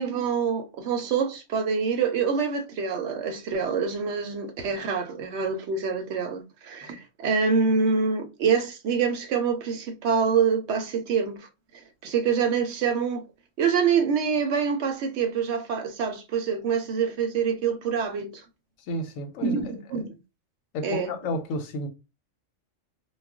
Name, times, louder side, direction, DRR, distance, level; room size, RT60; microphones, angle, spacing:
voice 1, 0.0-11.4 12.0-13.2 13.6-18.4 19.4-20.2 20.8-21.1, right 6 dB, 65° right, 0.8 m, -26 dB
voice 2, 18.9-19.5 19.9-20.1 20.7-21.9, left 1 dB, 90° left, 1.0 m, -31 dB
2.3 x 2.1 x 3.5 m
omnidirectional pair, 1.3 m